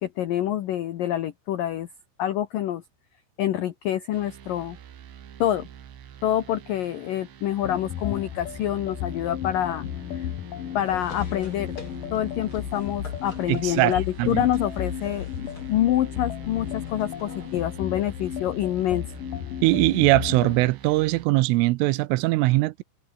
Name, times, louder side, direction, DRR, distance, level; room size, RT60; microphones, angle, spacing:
voice 1, 0.0-1.9 2.2-2.8 3.4-4.8 5.4-5.7 6.2-9.8 10.1-10.3 10.7-11.8 12.1-19.1, left 12 dB, 90° left, 1.9 m, -26 dB
sound 1, 4.1-21.3, right 9 dB, 60° right, 4.7 m, -47 dB
sound 2, 7.6-20.7, left 10 dB, 55° left, 2.9 m, -34 dB
sound 3, 10.8-17.6, left 2 dB, 25° left, 7.5 m, -48 dB
voice 2, 13.5-14.5 19.6-22.8, right 20 dB, 80° right, 3.3 m, -21 dB
omnidirectional pair, 5.8 m